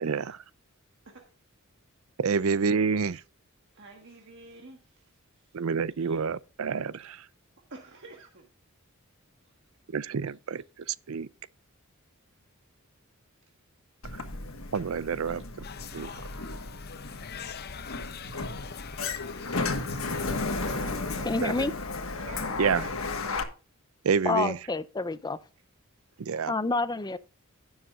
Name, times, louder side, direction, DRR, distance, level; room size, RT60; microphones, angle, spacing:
voice 1, 0.0-0.4 2.2-3.2 5.5-7.3 9.9-11.3 14.2-14.3 14.7-15.6 15.9-16.3 21.4-21.7 22.6-22.9 24.0-24.6 26.2-26.6, right 5 dB, 80° right, 0.5 m, -28 dB
voice 2, 3.7-5.6 6.0-6.2 7.7-8.5 9.4-9.5 20.3-21.5 22.2-23.2 26.1-26.3, right 3 dB, 60° right, 1.5 m, -50 dB
Sliding door, 14.0-23.4, left 3 dB, 70° left, 1.4 m, -34 dB
sound 1, 15.6-20.9, left 8 dB, 50° left, 0.7 m, -45 dB
voice 3, 21.2-21.7 24.3-25.4 26.5-27.2, left 3 dB, 20° left, 0.5 m, -28 dB
16.5 x 7.2 x 2.4 m
head